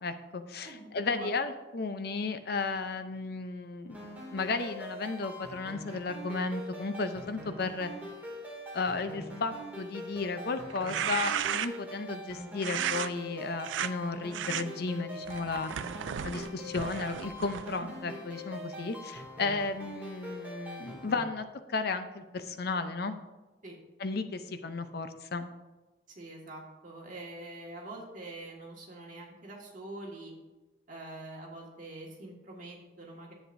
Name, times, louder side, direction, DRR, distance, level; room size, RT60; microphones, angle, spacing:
voice 1, 0.0-4.0 4.3-7.9 8.7-15.7 16.2-23.2 24.0-25.5, left 3 dB, 60° left, 9 dB, 0.6 m, -34 dB
voice 2, 0.6-1.3 17.8-18.2 23.6-23.8 26.1-30.3 30.9-33.3, right 2 dB, 45° right, -2 dB, 1.8 m, -45 dB
sound 1, 3.9-21.2, equal, 10° right, 2.3 m, -44 dB
sound 2, 10.7-11.9 12.6-13.1 13.6-13.9 14.3-14.6 15.3-17.8, right 9 dB, 90° right, 0.4 m, -34 dB
10.5 x 8.1 x 2.6 m, 1.1 s
head